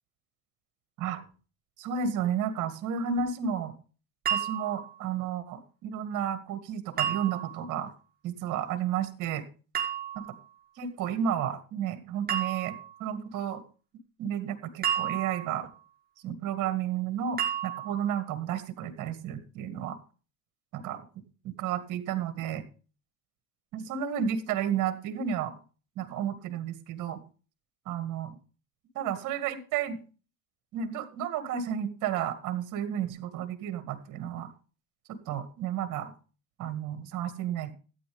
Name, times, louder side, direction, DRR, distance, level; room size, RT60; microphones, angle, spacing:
voice 1, 1.8-3.7 4.3-7.9 8.2-9.5 10.8-13.6 14.2-15.7 16.2-20.0 20.7-21.1 21.4-22.7 23.7-25.5 26.0-27.2 27.9-28.3 29.0-30.0 30.7-34.5 35.1-36.1 36.6-37.7, right 8 dB, 45° right, 9 dB, 1.9 m, -32 dB
sound 1, 4.3-5.0 7.0-7.7 9.7-10.4 12.3-13.0 14.8-15.7 17.4-18.1, right 9 dB, 20° right, 2.0 m, -32 dB
13.5 x 8.8 x 3.4 m, 0.36 s
supercardioid pair, 135°, 42 cm